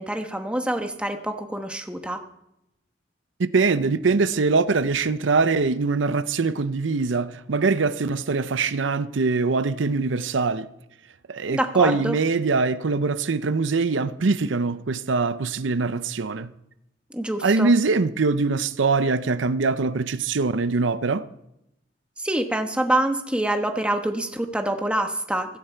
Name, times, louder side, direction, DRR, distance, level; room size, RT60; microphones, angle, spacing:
voice 1, 0.0-2.2 11.5-12.2 17.1-17.7 22.2-25.6, right 1 dB, 5° right, 1.2 m, -26 dB
voice 2, 3.4-10.7 11.3-16.5 17.4-21.2, right 4 dB, 80° right, 0.6 m, -23 dB
16.0 x 16.0 x 4.5 m
head